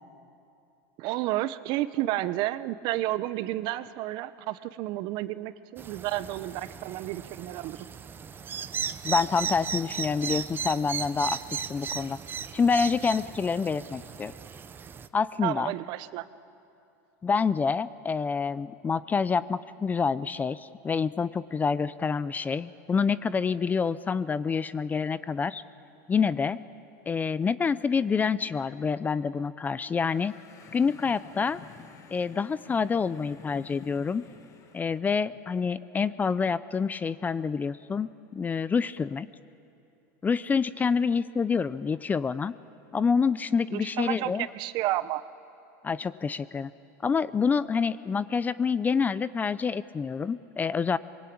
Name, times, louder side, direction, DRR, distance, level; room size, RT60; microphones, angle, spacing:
voice 1, 1.0-7.8 15.4-16.2 43.7-45.2, right 15 dB, 50° right, 15 dB, 0.9 m, -31 dB
sound 1, 5.8-15.1, right 7 dB, 20° right, 0.8 m, -36 dB
voice 2, 9.0-12.2 12.5-14.3 15.1-15.7 17.2-25.6 26.1-26.6 27.1-30.3 30.7-31.6 32.1-34.2 34.7-39.3 40.2-42.5 42.9-44.5 45.8-46.7 47.0-51.0, left 5 dB, 20° left, 17 dB, 0.5 m, -27 dB
sound 2, 30.0-35.0, left 6 dB, 35° left, 2.0 m, -51 dB
24.0 x 22.0 x 8.7 m, 2.7 s
supercardioid pair, 125°, 9 cm